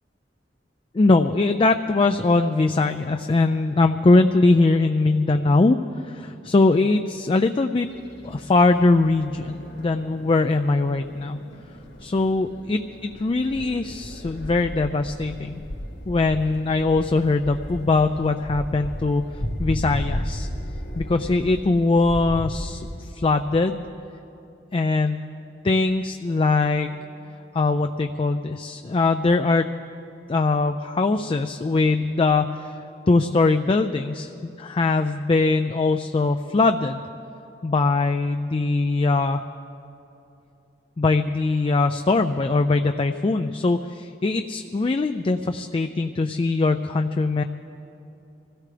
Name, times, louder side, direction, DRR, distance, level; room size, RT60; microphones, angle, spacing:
voice 1, 0.9-5.8 6.0-7.9 8.2-11.4 12.0-15.6 16.1-19.2 19.6-20.5 21.0-23.8 24.7-25.3 25.6-26.9 27.5-29.7 30.3-32.7 33.1-37.0 37.6-39.4 41.0-47.4, left 3 dB, 30° left, 7 dB, 0.4 m, -21 dB
sound 1, 7.9-23.0, equal, 80° left, 2.6 m, -35 dB
24.5 x 16.5 x 3.4 m, 2.9 s
head